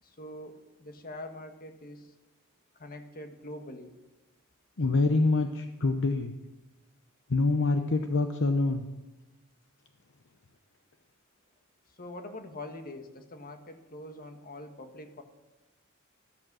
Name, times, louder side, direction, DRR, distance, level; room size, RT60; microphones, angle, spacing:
voice 1, 0.0-2.1 2.7-3.9 11.9-15.2, left 1 dB, 40° left, 6 dB, 1.5 m, -44 dB
voice 2, 4.8-6.3 7.3-8.8, left 3 dB, 60° left, 7 dB, 0.8 m, -26 dB
14.0 x 12.5 x 6.2 m, 1.1 s
head